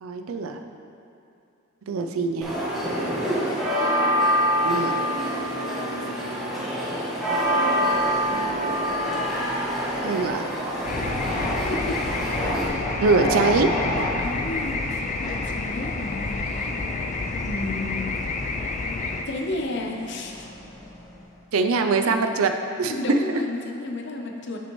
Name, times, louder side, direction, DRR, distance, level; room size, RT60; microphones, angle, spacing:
voice 1, 0.0-0.6 1.9-2.6 4.7-4.9 10.0-10.5 13.0-13.7 21.5-22.5 22.8-23.2, right 4 dB, 85° right, 6 dB, 0.5 m, -23 dB
sound 1, 2.4-12.7, equal, ahead, 1.4 m, -25 dB
sound 2, 7.5-21.3, equal, 15° left, 0.8 m, -35 dB
sound 3, 10.8-19.2, left 3 dB, 35° left, 0.3 m, -29 dB
voice 2, 11.7-12.0 14.2-16.7 17.4-18.1 19.2-20.5 22.9-24.6, left 2 dB, 55° left, 2 dB, 0.7 m, -32 dB
8.0 x 6.3 x 3.1 m, 2.6 s
head